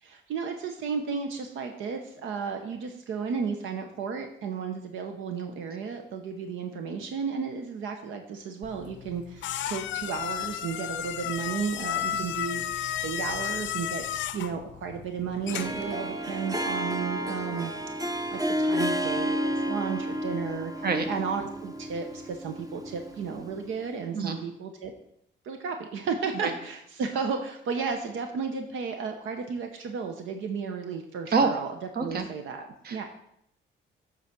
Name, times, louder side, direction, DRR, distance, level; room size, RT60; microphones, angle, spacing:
voice 1, 0.0-14.0 14.3-17.7 18.0-24.9 25.4-33.0, right 5 dB, 80° right, 5 dB, 0.9 m, -33 dB
sound 1, 8.6-15.9, left 11 dB, 70° left, 0.5 m, -33 dB
voice 2, 12.1-12.2 20.8-21.1 24.1-24.4 26.4-26.5 31.3-31.5 32.0-32.2 32.8-33.0, right 4 dB, 50° right, 7 dB, 1.1 m, -26 dB
Harp, 15.4-23.7, equal, 15° right, 0.7 m, -31 dB
8.3 x 4.0 x 5.9 m, 0.73 s
cardioid pair, 90°, 20 cm